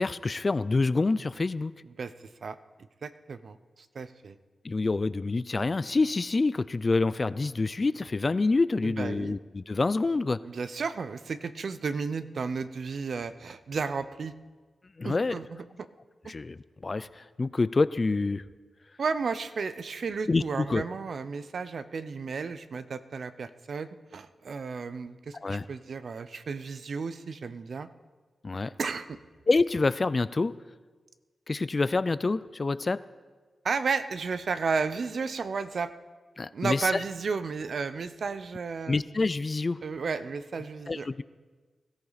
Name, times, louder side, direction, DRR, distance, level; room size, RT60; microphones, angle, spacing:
voice 1, 0.0-1.7 4.6-10.4 15.0-15.4 16.3-18.4 20.3-20.8 25.4-25.7 28.4-28.7 29.5-30.5 31.5-33.0 36.4-37.0 38.9-39.8 40.9-41.2, left 3 dB, 40° left, 16 dB, 0.5 m, -27 dB
voice 2, 3.0-3.6 3.9-4.4 8.8-9.3 10.4-14.3 15.0-15.7 19.0-27.9 28.8-29.2 33.6-35.9 36.5-39.0 39.8-41.1, right 5 dB, 65° right, 12 dB, 0.7 m, -33 dB
21.0 x 14.0 x 4.1 m, 1.4 s
cardioid pair, 65°, 0 cm